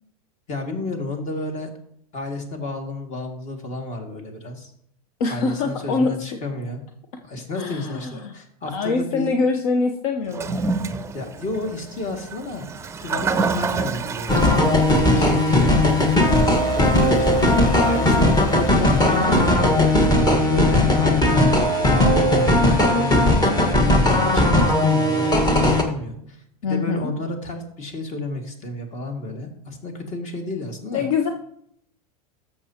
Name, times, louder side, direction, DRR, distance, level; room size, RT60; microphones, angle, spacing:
voice 1, 0.5-1.7 2.1-4.7 5.3-6.8 7.2-9.3 11.1-12.7 13.0-14.8 15.0-17.5 17.8-21.6 21.9-31.1, left 2 dB, 40° left, 4 dB, 2.1 m, -31 dB
voice 2, 5.2-6.1 7.5-8.3 8.7-10.8 15.3-15.7 26.6-27.1 30.9-31.3, left 4 dB, 65° left, 5 dB, 0.9 m, -24 dB
Toilet flush, 10.3-19.5, right 4 dB, 15° right, 0.6 m, -30 dB
sound 1, 14.3-25.8, left 1 dB, 20° left, 1.5 m, -18 dB
13.5 x 7.0 x 2.9 m, 0.71 s
hypercardioid pair, 110°, 19 cm